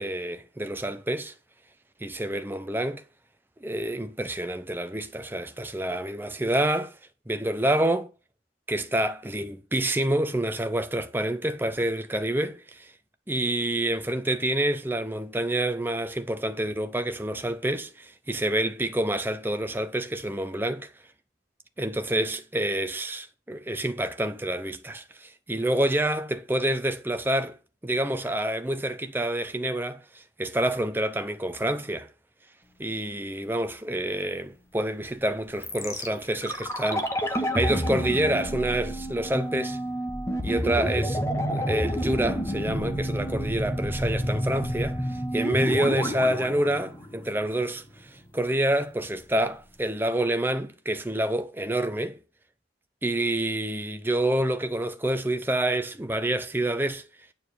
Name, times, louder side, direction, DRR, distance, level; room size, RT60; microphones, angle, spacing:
voice 1, 0.0-1.3 2.0-3.0 3.6-6.9 7.3-8.1 8.7-12.9 13.3-20.9 21.8-27.6 27.8-32.1 32.8-39.8 40.4-41.2 41.5-47.8 48.1-52.2 53.0-57.1, right 1 dB, 10° right, 0.7 m, -28 dB
sound 1, 35.6-47.6 47.9-48.0, equal, 15° left, 1.1 m, -29 dB
9.4 x 4.4 x 6.7 m
head